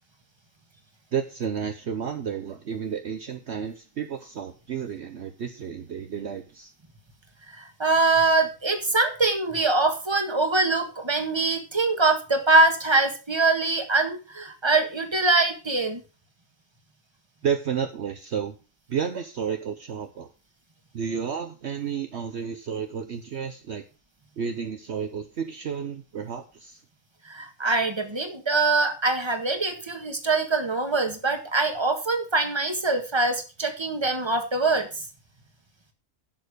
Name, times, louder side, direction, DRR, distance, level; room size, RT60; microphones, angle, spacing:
voice 1, 1.1-6.7 17.4-18.6 18.9-20.3 20.9-23.8 24.4-26.8, right 7 dB, 60° right, 7 dB, 1.1 m, -31 dB
voice 2, 7.5-16.0 27.2-34.9, right 3 dB, 20° right, 5 dB, 1.7 m, -23 dB
11.5 x 6.8 x 5.1 m, 0.33 s
omnidirectional pair, 1.4 m